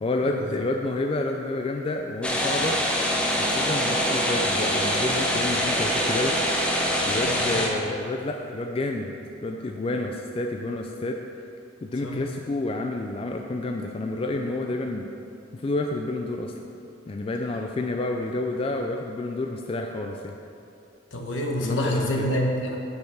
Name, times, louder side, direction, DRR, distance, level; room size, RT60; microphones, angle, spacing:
voice 1, 0.0-2.8 3.4-6.4 7.0-9.1 9.4-11.2 11.8-15.1 15.5-16.5 17.1-20.4 21.6-22.3, left 2 dB, 30° left, 3 dB, 0.3 m, -29 dB
sound 1, 2.2-7.7, equal, 5° left, 0.7 m, -24 dB
voice 2, 21.1-22.8, equal, 75° left, 1 dB, 1.0 m, -26 dB
5.9 x 5.3 x 6.8 m, 2.6 s
head